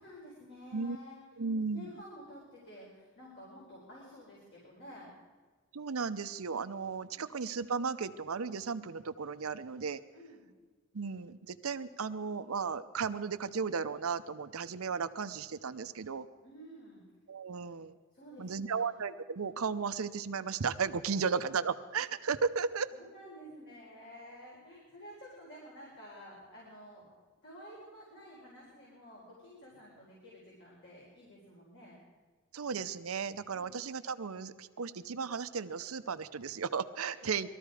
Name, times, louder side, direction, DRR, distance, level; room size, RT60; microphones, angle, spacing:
voice 1, 0.0-1.2 1.7-5.1 7.1-7.3 10.1-10.5 16.4-17.0 18.1-18.9 21.1-21.4 22.9-27.1 27.4-32.0 37.0-37.3, equal, 60° left, -5 dB, 4.4 m, -51 dB
voice 2, 1.4-1.9 5.7-10.0 10.9-16.3 17.3-17.9 18.4-22.9 32.5-37.5, right 5 dB, 90° right, 12 dB, 0.7 m, -35 dB
20.0 x 13.5 x 4.9 m, 1.4 s
head